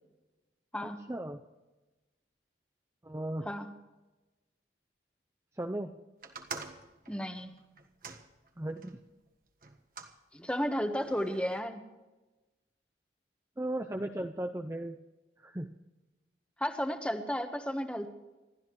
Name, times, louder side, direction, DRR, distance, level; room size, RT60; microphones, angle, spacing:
voice 1, 0.8-1.4 3.0-3.5 5.6-5.9 8.6-9.0 13.6-15.0 15.4-15.7, right 1 dB, 15° right, 5 dB, 0.6 m, -36 dB
sound 1, 6.2-9.0 9.6-10.2 10.9-11.6, right 4 dB, 50° right, 1.5 m, -46 dB
voice 2, 7.1-7.5 10.3-11.8 16.6-18.1, equal, 5° left, 6 dB, 1.2 m, -33 dB
27.0 x 13.0 x 3.2 m, 1.1 s
head